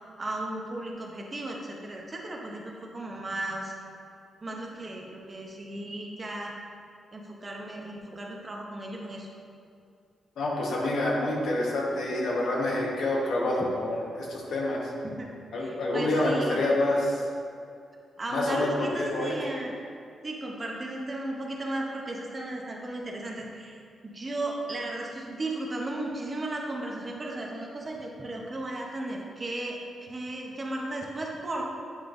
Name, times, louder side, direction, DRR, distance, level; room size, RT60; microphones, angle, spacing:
voice 1, 0.2-3.7 4.4-6.5 7.1-9.3 13.6-13.7 15.0-15.3 15.6-16.6 18.2-19.8 20.2-23.8 24.0-31.6, right 1 dB, 25° right, -1 dB, 0.7 m, -35 dB
voice 2, 10.4-14.9 15.5-17.2 18.3-19.3, left 1 dB, 75° left, -3 dB, 1.2 m, -27 dB
8.0 x 5.2 x 2.6 m, 2.4 s
wide cardioid pair, 150°, 0 cm